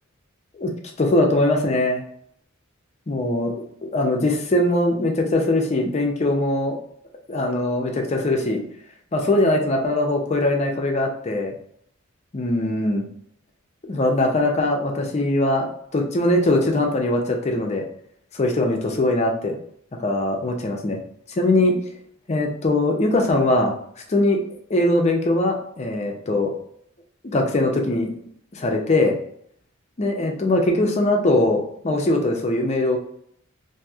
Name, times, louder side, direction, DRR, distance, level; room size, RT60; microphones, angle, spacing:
voice 1, 1.0-2.0 3.1-6.8 7.3-8.6 9.1-11.5 12.3-13.1 13.8-15.7 15.9-17.8 18.3-19.6 20.0-21.0 21.4-21.8 22.3-23.8 24.1-24.4 24.7-26.5 27.3-28.1 28.5-29.2 30.0-33.0, left 1 dB, 30° left, 2 dB, 0.5 m, -21 dB
2.9 x 2.6 x 2.3 m, 0.68 s
head